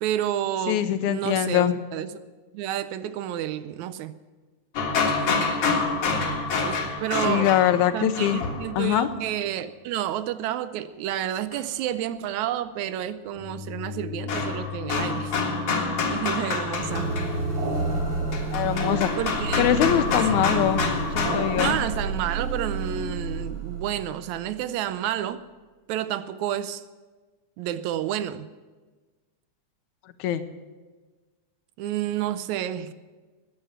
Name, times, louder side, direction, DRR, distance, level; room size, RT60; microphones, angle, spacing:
voice 1, 0.0-1.6 1.9-2.1 2.5-4.1 6.6-7.5 7.9-15.4 15.8-17.2 19.2-19.8 20.1-20.6 21.6-25.4 25.9-26.8 27.6-28.5 31.8-32.9, right 11 dB, 80° right, 13 dB, 1.8 m, -30 dB
voice 2, 0.7-1.8 7.2-8.4 8.8-9.1 18.5-19.1 19.6-20.8 21.1-21.8 30.2-30.4, left 11 dB, 80° left, 11 dB, 2.1 m, -23 dB
sound 1, 4.8-9.1 11.5-11.6 13.4-21.7, left 4 dB, 55° left, 2.6 m, -28 dB
sound 2, 16.8-24.7, right 2 dB, 40° right, 3.6 m, -30 dB
13.5 x 9.8 x 7.9 m, 1.3 s
omnidirectional pair, 3.5 m